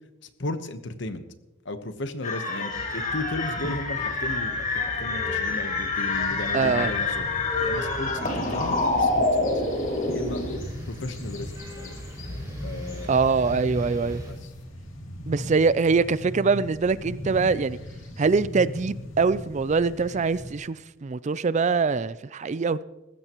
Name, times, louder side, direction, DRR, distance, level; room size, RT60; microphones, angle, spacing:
voice 1, 0.4-1.2 1.6-7.3 7.6-9.6 10.1-10.4 10.8-12.0 12.6-13.2 14.3-14.5, left 2 dB, 65° left, 1.1 m, -35 dB
sound 1, 2.2-10.6, left 3 dB, 40° left, 2.1 m, -27 dB
sound 2, 2.7-14.3, equal, 15° right, 5.5 m, -40 dB
sound 3, 6.1-20.5, left 1 dB, 85° left, 2.6 m, -39 dB
voice 2, 6.5-6.9 13.1-14.2 15.3-17.8 18.2-22.8, right 4 dB, 35° right, 0.4 m, -23 dB
19.5 x 15.5 x 3.0 m
head